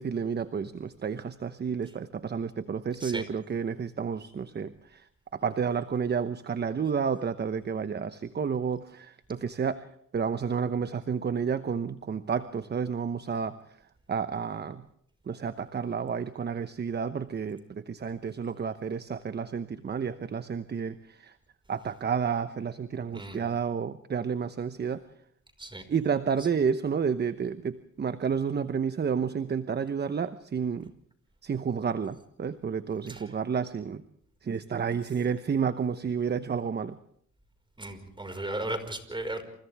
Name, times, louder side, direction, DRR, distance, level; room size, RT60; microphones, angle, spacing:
voice 1, 0.0-5.0 5.3-9.9 10.1-13.6 14.1-14.8 15.3-21.3 21.7-25.0 25.9-30.9 31.4-34.0 34.4-37.0, right 6 dB, 35° right, 12 dB, 1.0 m, -30 dB
voice 2, 37.8-39.4, right 1 dB, 15° right, 7 dB, 5.2 m, -35 dB
29.0 x 28.5 x 3.5 m, 0.66 s
cardioid pair, 90°, 30 cm